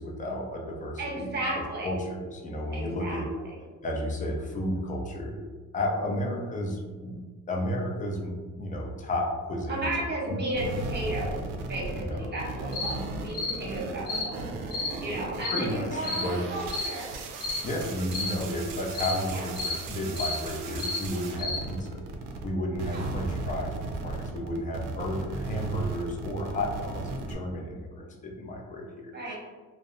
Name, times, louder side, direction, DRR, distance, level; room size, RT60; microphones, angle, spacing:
voice 1, 0.0-1.3 1.8-3.3 3.8-7.2 7.5-9.9 10.3-10.4 11.9-12.3 15.5-16.4 17.6-22.0 22.4-29.4, left 1 dB, 25° left, -1 dB, 0.5 m, -32 dB
voice 2, 1.0-1.9 2.7-3.2 6.1-6.3 9.7-11.4 11.7-14.4 15.0-17.0 19.3-19.5 20.7-20.9 22.9-23.1 29.1-29.4, right 1 dB, 30° right, -3 dB, 0.9 m, -34 dB
sound 1, 10.5-22.5 22.7-27.3, right 3 dB, 75° right, 0.5 m, -36 dB
sound 2, 12.7-12.9 13.3-13.5 14.1-14.3 14.7-14.9 15.4-15.6 16.0-16.3 16.7-16.9 17.4-17.6 18.1-18.3 18.9-19.2 19.6-19.8 20.2-20.4 20.8-21.0 21.4-21.6, left 3 dB, 75° left, 0.9 m, -31 dB
2.5 x 2.1 x 2.5 m, 1.4 s
supercardioid pair, 80°, 32 cm